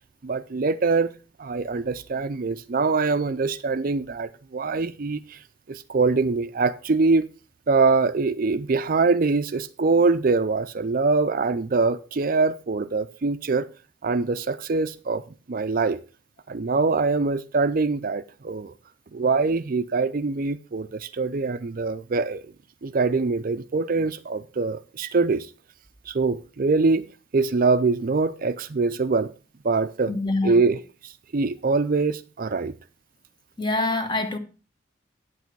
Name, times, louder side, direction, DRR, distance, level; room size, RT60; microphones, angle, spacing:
voice 1, 0.2-1.1 1.4-5.4 5.7-7.3 7.7-13.7 14.0-15.2 15.5-16.0 16.5-18.7 19.1-22.4 22.8-25.5 26.1-27.1 27.3-29.3 29.6-30.1 30.4-32.7, right 4 dB, 45° right, 0.5 m, -23 dB
voice 2, 30.1-30.6 33.6-34.4, left 2 dB, 25° left, 1.2 m, -25 dB
9.3 x 8.2 x 4.6 m
head